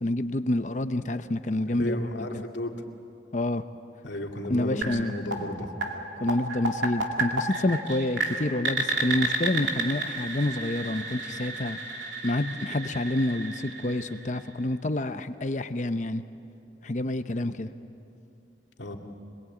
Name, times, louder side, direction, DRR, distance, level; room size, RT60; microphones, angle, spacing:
voice 1, 0.0-2.0 2.3-2.5 3.3-3.6 4.5-5.1 6.2-11.8 12.2-16.2 16.8-17.7, left 1 dB, 40° left, 10 dB, 0.8 m, -28 dB
voice 2, 1.7-2.8 4.0-5.7 18.8-19.0, left 1 dB, 80° left, 2 dB, 2.3 m, -33 dB
sound 1, 4.8-14.6, right 3 dB, 85° right, 2.5 m, -32 dB
26.0 x 22.0 x 8.5 m, 2.6 s
head